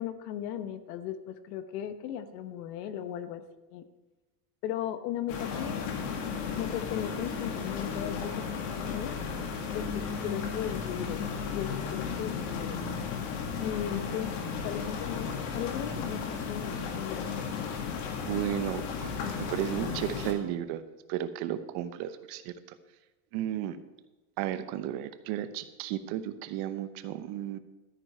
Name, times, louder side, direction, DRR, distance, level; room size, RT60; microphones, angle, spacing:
voice 1, 0.0-3.4 3.7-3.8 4.6-5.9 6.6-8.6 8.9-9.2 9.7-11.2 11.5-12.8 13.6-14.3 14.6-17.7, left 10 dB, 80° left, 11 dB, 1.2 m, -37 dB
sound 1, 5.3-20.3, left 6 dB, 65° left, 2.2 m, -34 dB
voice 2, 18.2-20.8 21.1-22.8 23.3-23.8 24.4-27.6, right 11 dB, 55° right, 11 dB, 0.9 m, -34 dB
13.0 x 9.6 x 4.4 m, 1.1 s
supercardioid pair, 150°, 48 cm